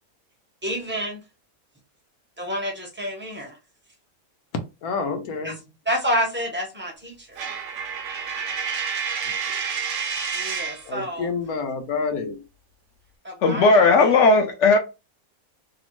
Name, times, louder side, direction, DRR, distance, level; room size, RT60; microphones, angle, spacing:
voice 1, 0.6-1.2 2.4-3.6 5.4-5.5 5.9-7.5 10.3-11.3 13.2-14.1, equal, 15° right, 0.4 m, -29 dB
voice 2, 4.8-5.7 9.2-9.6 10.8-12.5, left 5 dB, 85° left, 1.1 m, -29 dB
Coin (dropping), 7.4-10.9, right 6 dB, 65° right, 0.8 m, -29 dB
voice 3, 13.4-14.8, left 3 dB, 65° left, 0.8 m, -16 dB
3.0 x 2.0 x 3.0 m
omnidirectional pair, 1.5 m